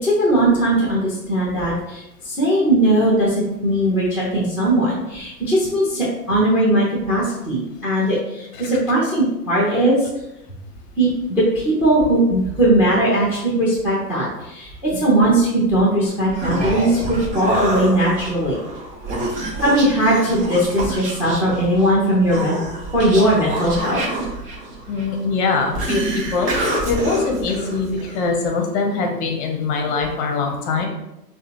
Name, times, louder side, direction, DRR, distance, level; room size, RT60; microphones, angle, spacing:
voice 1, 0.0-10.1 11.0-18.6 19.6-22.6 22.9-24.0, right 1 dB, 5° right, -5 dB, 1.1 m, -19 dB
Human voice, 16.1-28.3, right 1 dB, 35° right, 1.1 m, -27 dB
voice 2, 24.9-26.5 26.8-30.9, left 4 dB, 35° left, 2 dB, 0.9 m, -23 dB
6.5 x 2.4 x 3.0 m, 0.90 s
hypercardioid pair, 115°, 49 cm